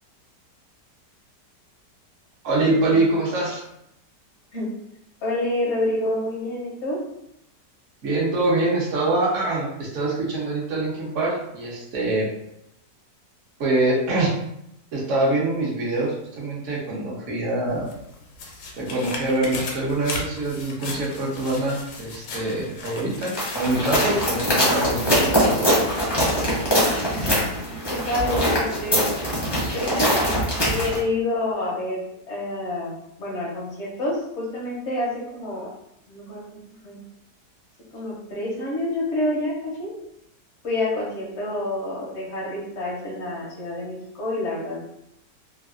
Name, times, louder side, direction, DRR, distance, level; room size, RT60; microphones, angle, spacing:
voice 1, 2.4-3.6 8.0-12.3 13.6-14.3 14.9-17.9 18.8-25.8, right 2 dB, 60° right, -4 dB, 0.9 m, -24 dB
voice 2, 5.2-7.0 27.9-29.2 29.7-30.3 30.6-32.0 32.3-35.7 36.1-37.0 37.9-39.9 40.6-44.8, left 1 dB, 60° left, -3 dB, 0.7 m, -28 dB
sound 1, 17.7-26.4 26.8-26.9, left 3 dB, 75° left, 1.1 m, -37 dB
sound 2, 23.4-31.0, equal, 30° left, 0.5 m, -22 dB
3.2 x 2.1 x 2.4 m, 0.79 s
omnidirectional pair, 1.9 m